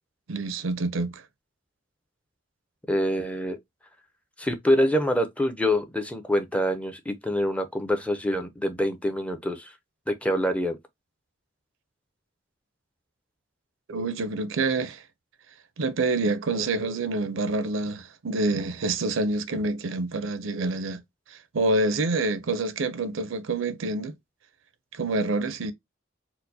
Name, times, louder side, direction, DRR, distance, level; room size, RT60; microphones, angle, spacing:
voice 1, 0.3-1.2 13.9-15.0 15.8-21.0 21.3-24.1 24.9-25.7, right 2 dB, 75° right, 0.5 m, -27 dB
voice 2, 2.9-3.6 4.4-9.7 10.1-10.8, equal, 5° left, 0.5 m, -25 dB
4.4 x 2.1 x 2.6 m
head